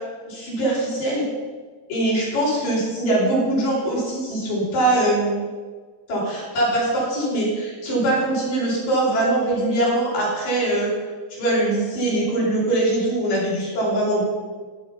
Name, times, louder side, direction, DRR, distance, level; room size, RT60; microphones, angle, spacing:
voice 1, 0.3-1.2 1.9-5.4 6.1-10.9 11.3-14.2, right 1 dB, 90° left, -6 dB, 6.6 m, -22 dB
13.0 x 11.5 x 5.8 m, 1.5 s
omnidirectional pair, 3.7 m